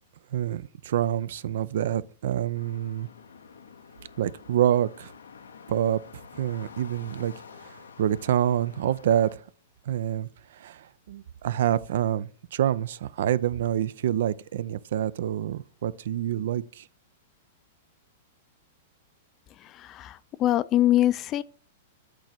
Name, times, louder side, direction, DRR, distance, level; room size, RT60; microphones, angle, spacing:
voice 1, 0.3-3.1 4.2-5.1 5.7-6.0 6.3-7.3 7.6-9.4 9.9-16.9, right 11 dB, 70° right, 0.3 m, -27 dB
sound 1, 2.5-9.3, left 6 dB, 90° left, 0.6 m, -48 dB
voice 2, 19.7-21.4, left 13 dB, 35° left, 0.3 m, -23 dB
8.2 x 3.1 x 4.3 m
hypercardioid pair, 115°, 0 cm